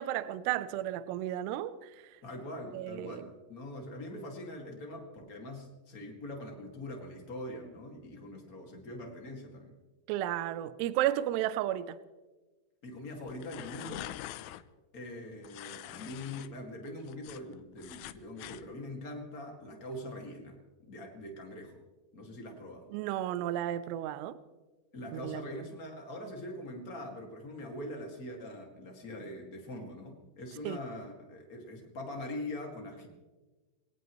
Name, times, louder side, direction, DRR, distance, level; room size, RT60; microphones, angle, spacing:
voice 1, 0.0-1.9 2.7-3.3 10.1-12.0 22.9-24.4 25.1-25.4 30.7-30.8, right 12 dB, 80° right, 2.6 m, -33 dB
voice 2, 2.2-9.7 12.8-14.1 14.9-20.6 20.9-21.8 22.1-22.9 24.9-33.1, left 1 dB, 40° left, 1.2 m, -43 dB
sound 1, 13.3-14.6 15.4-16.5 16.9-18.6, left 15 dB, 85° left, 3.0 m, -44 dB
24.0 x 18.0 x 3.2 m
omnidirectional pair, 5.4 m